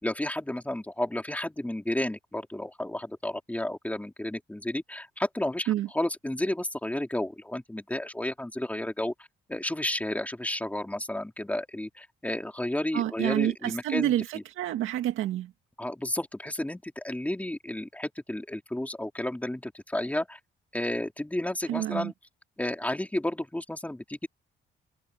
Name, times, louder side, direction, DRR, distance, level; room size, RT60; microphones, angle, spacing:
voice 1, 0.0-14.1 15.8-20.4 20.7-22.1 22.6-24.3, left 1 dB, 5° left, 3.7 m, -32 dB
voice 2, 12.9-15.5 21.7-22.1, right 12 dB, 85° right, 2.0 m, -28 dB
cardioid pair, 90°, 20 cm